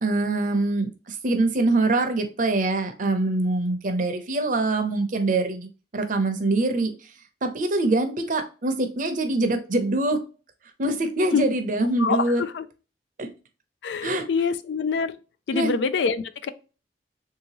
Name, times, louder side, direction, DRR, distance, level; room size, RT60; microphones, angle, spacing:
voice 1, 0.0-6.9 7.4-10.2 10.8-12.4 13.2-13.3 14.0-14.2 15.5-15.7, right 2 dB, 50° right, 0.7 m, -24 dB
voice 2, 12.0-12.7 13.8-15.2 15.5-16.5, left 5 dB, 80° left, 0.4 m, -25 dB
3.5 x 2.8 x 2.9 m
head